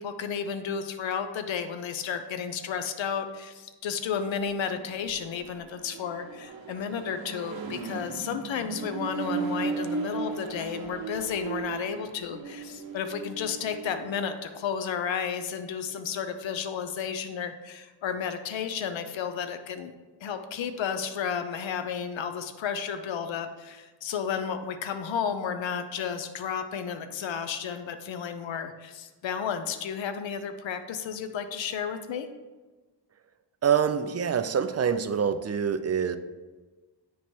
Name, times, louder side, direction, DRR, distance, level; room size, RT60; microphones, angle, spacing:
voice 1, 0.0-19.9 20.2-32.3, left 7 dB, 80° left, 9 dB, 0.6 m, -32 dB
Accelerating revving vroom, 4.1-14.6, right 4 dB, 55° right, 0.9 m, -37 dB
voice 2, 33.6-36.2, right 7 dB, 35° right, 11 dB, 0.4 m, -25 dB
9.3 x 3.1 x 4.3 m, 1.2 s
wide cardioid pair, 85°, 45 cm